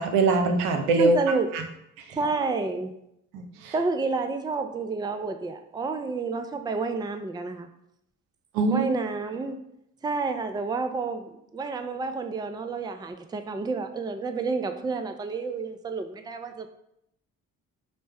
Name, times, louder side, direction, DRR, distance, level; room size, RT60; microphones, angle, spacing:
voice 1, 0.0-1.2 1.5-1.6 3.3-3.7 8.5-8.9, right 3 dB, 80° right, 5 dB, 0.6 m, -22 dB
voice 2, 0.9-1.5 2.2-2.9 3.7-7.7 8.7-9.6 10.0-16.7, right 4 dB, 10° right, 8 dB, 0.4 m, -29 dB
5.1 x 2.1 x 4.4 m, 0.79 s
hypercardioid pair, 40°, 41 cm